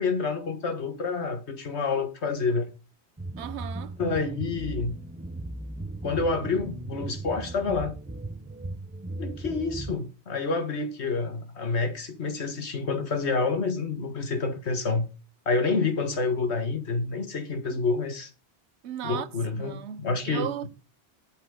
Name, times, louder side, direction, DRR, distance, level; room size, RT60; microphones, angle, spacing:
voice 1, 0.0-2.7 4.0-5.0 6.0-8.0 9.2-15.1 15.4-18.3 19.0-20.5, left 4 dB, 75° left, 1.7 m, -28 dB
sound 1, 3.2-10.0, right 2 dB, 15° right, 0.3 m, -37 dB
voice 2, 3.4-3.9 18.8-19.3 19.6-20.7, right 10 dB, 80° right, 1.0 m, -35 dB
8.0 x 7.9 x 3.8 m
omnidirectional pair, 1.1 m